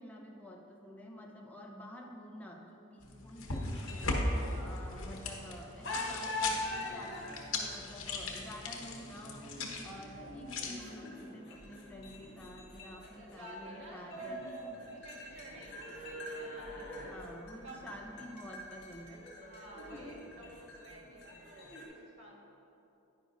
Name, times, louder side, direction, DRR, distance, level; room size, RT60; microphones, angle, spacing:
voice 1, 0.0-14.4 16.8-19.3 20.4-20.5, equal, 5° left, 0 dB, 0.7 m, -50 dB
sound 1, 3.0-10.7, left 2 dB, 65° left, 1.1 m, -38 dB
sound 2, 3.5-5.5 5.8-21.8, left 1 dB, 50° left, 2.0 m, -44 dB
voice 2, 4.2-5.0 13.0-14.3 14.9-17.1 17.6-17.8 19.4-22.4, equal, 60° right, -3 dB, 1.5 m, -52 dB
10.0 x 9.8 x 2.6 m, 2.9 s
head